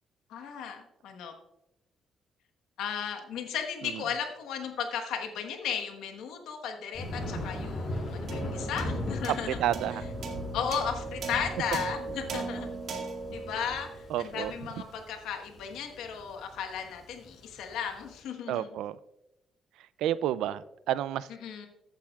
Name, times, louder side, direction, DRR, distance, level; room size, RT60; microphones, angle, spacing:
voice 1, 0.3-1.3 2.8-9.6 10.5-12.7 13.3-18.7 21.4-21.7, left 7 dB, 85° left, 1.3 m, -35 dB
Thunder, 6.9-18.0, left 1 dB, 45° left, 4.2 m, -38 dB
sound 1, 8.3-14.9, right 4 dB, 65° right, 2.0 m, -39 dB
voice 2, 9.5-10.0 14.1-14.5 18.5-19.0 20.0-20.6 20.9-21.3, right 12 dB, 85° right, 0.3 m, -30 dB
14.5 x 9.0 x 2.4 m
cardioid pair, 90°, 0 cm